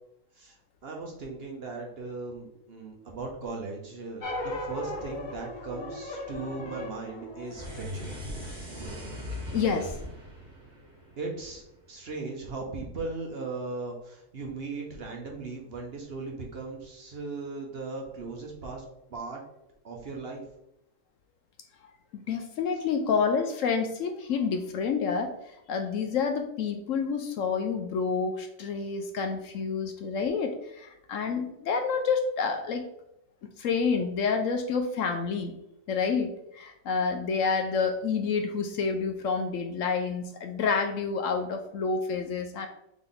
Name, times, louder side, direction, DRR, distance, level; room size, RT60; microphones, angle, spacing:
voice 1, 0.8-8.1 11.2-11.6 11.9-18.8 19.1-19.4 19.8-20.4, right 3 dB, 50° right, 0 dB, 0.9 m, -38 dB
sound 1, 4.2-8.8, left 1 dB, 40° left, 0.7 m, -38 dB
sound 2, 7.4-11.8, left 1 dB, 35° right, 1.3 m, -40 dB
voice 2, 9.5-10.0 22.3-25.3 25.7-32.9 33.6-35.5 35.9-42.7, left 5 dB, 70° left, 5 dB, 0.9 m, -28 dB
3.8 x 3.5 x 3.8 m, 0.82 s
omnidirectional pair, 1.5 m